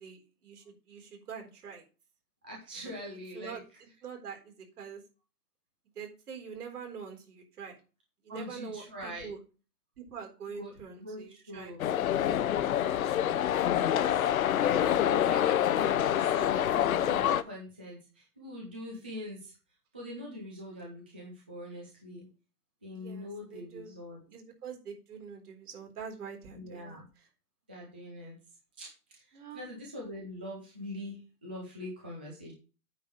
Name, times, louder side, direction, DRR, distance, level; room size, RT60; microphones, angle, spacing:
voice 1, 0.0-1.8 2.8-5.0 6.0-7.8 8.2-9.4 10.0-11.7 22.9-23.9 24.3-27.3 29.3-29.7, right 6 dB, 75° right, 2 dB, 4.1 m, -45 dB
voice 2, 2.4-3.6 6.6-6.8 8.3-9.3 10.6-11.8 14.6-19.5 19.9-22.3 22.8-24.2 26.5-27.0 27.7-28.4 28.8-32.5, left 1 dB, 10° right, -3 dB, 0.4 m, -43 dB
sound 1, 11.8-17.4, left 10 dB, 60° left, 0.8 m, -26 dB
8.7 x 5.0 x 6.2 m, 0.33 s
hypercardioid pair, 150°, 46 cm